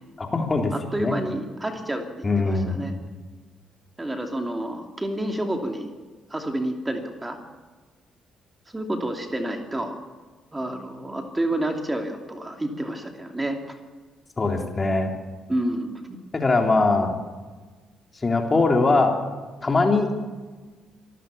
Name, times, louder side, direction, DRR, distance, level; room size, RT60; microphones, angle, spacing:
voice 1, 0.2-0.7 1.0-1.1 2.2-2.9 14.4-15.1 16.3-17.2 18.2-19.1 19.6-20.1, left 3 dB, 25° left, 2 dB, 3.5 m, -21 dB
voice 2, 0.7-2.9 4.0-5.9 6.3-7.4 8.7-10.0 10.5-13.8 15.5-16.2, right 1 dB, 15° right, 4 dB, 2.7 m, -29 dB
26.0 x 14.5 x 7.1 m, 1.4 s
figure-of-eight pair, 45°, 0 cm